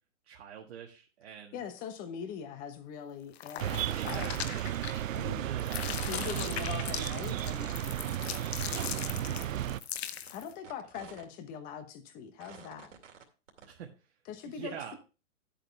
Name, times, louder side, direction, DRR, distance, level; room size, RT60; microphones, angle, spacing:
voice 1, 0.2-1.6 3.7-4.7 5.4-7.7 13.6-14.1 14.4-15.0, right 8 dB, 60° right, 1.7 m, -46 dB
voice 2, 1.5-4.5 5.1-5.4 5.9-7.7 9.0-9.6 10.3-12.9 14.3-15.0, left 7 dB, 20° left, 1.1 m, -42 dB
sound 1, 3.3-5.3 5.6-10.5, left 10 dB, 55° left, 0.9 m, -40 dB
sound 2, 3.6-9.8, right 12 dB, 90° right, 0.5 m, -34 dB
sound 3, 5.4-5.5 5.8-6.5 7.0-7.6 8.0-8.6 8.8-9.3 9.7-11.2 11.7-11.8 12.4-13.2 13.5-13.7, right 7 dB, 75° right, 2.5 m, -51 dB
10.5 x 8.2 x 3.3 m
hypercardioid pair, 150°, 38 cm